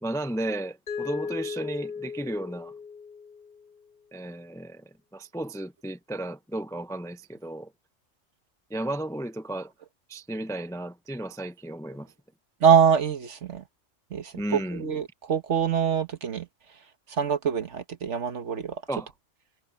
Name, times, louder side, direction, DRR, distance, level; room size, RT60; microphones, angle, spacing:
voice 1, 0.0-2.7 4.1-4.8 5.1-7.7 8.7-9.7 10.1-12.1 14.3-14.8 18.9-19.1, right 1 dB, 5° left, 0.5 m, -34 dB
Mallet percussion, 0.9-3.8, left 6 dB, 35° left, 2.1 m, -36 dB
voice 2, 12.6-13.6 14.1-16.5 17.1-18.8, right 7 dB, 65° right, 1.6 m, -24 dB
omnidirectional pair, 1.3 m